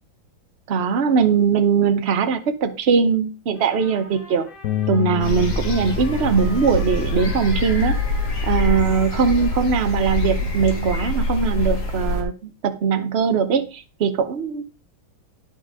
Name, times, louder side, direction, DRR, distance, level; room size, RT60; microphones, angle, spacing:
voice 1, 0.7-4.5 4.9-8.0 8.4-14.6, right 6 dB, 45° right, 0.9 m, -20 dB
Trumpet, 3.5-10.3, equal, 25° left, 2.8 m, -43 dB
sound 1, 4.6-10.9, left 12 dB, 80° left, 0.7 m, -32 dB
sound 2, 5.2-12.2, left 2 dB, 55° left, 2.3 m, -24 dB
9.9 x 5.5 x 4.9 m
omnidirectional pair, 2.2 m